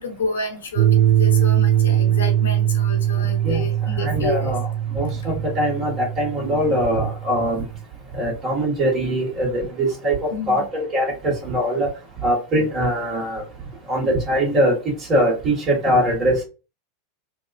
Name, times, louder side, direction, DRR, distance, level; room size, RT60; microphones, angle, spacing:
voice 1, 0.0-4.5 5.2-5.3 10.3-10.6, left 2 dB, 80° left, 0.9 m, -30 dB
sound 1, 0.8-7.8, right 11 dB, 70° right, 0.5 m, -21 dB
voice 2, 4.0-7.6 8.2-11.9 12.2-13.4 13.9-14.8 15.1-16.4, equal, 40° right, 1.4 m, -22 dB
2.8 x 2.3 x 2.4 m
hypercardioid pair, 90°, 0 cm